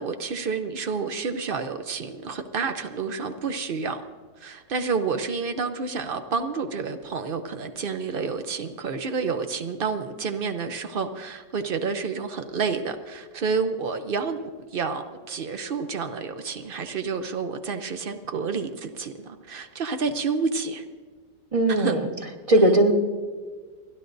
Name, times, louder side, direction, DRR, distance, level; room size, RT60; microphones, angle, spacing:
voice 1, 0.0-4.0 4.4-14.4 14.7-20.8 21.7-22.0 22.5-22.8, right 5 dB, 85° right, 8 dB, 0.4 m, -29 dB
voice 2, 21.5-22.1 22.5-22.9, right 1 dB, 20° right, 4 dB, 1.2 m, -18 dB
29.5 x 11.5 x 2.6 m, 1.5 s
omnidirectional pair, 1.9 m